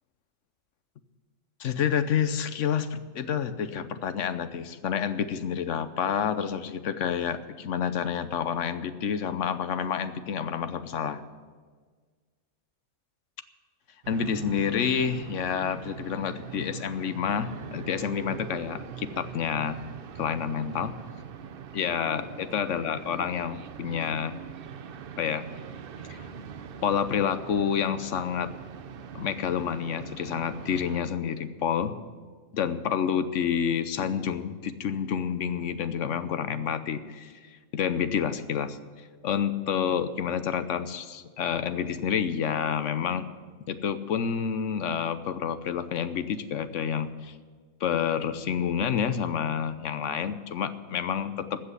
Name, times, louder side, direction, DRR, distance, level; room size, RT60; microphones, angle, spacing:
voice 1, 1.6-11.2 14.1-19.8 20.2-20.9 21.7-24.3 25.2-25.5 26.1-26.3 26.8-28.5 29.1-31.9 32.5-37.3 37.7-38.8 39.2-43.2 43.7-47.3 47.8-51.6, left 8 dB, 75° left, 12 dB, 1.1 m, -29 dB
sound 1, 14.0-31.0, right 7 dB, 55° right, 0.7 m, -42 dB
15.5 x 6.1 x 9.7 m, 1.5 s
omnidirectional pair, 1.3 m